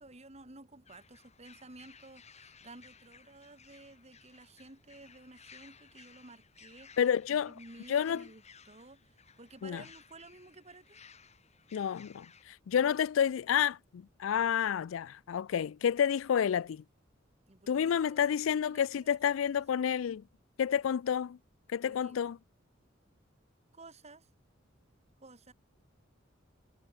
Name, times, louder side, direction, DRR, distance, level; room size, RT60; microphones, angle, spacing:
voice 1, 0.0-7.0 7.3-11.0 17.5-19.2 19.5-20.1 21.8-22.3 23.7-24.3 25.2-25.5, right 2 dB, 35° right, 3.2 m, -54 dB
sound 1, 0.9-12.5, left 6 dB, 35° left, 4.0 m, -59 dB
voice 2, 7.0-7.5 7.9-8.2 9.6-9.8 11.7-16.8 17.7-20.2 20.6-21.4 21.7-22.4, left 8 dB, 85° left, 0.4 m, -30 dB
head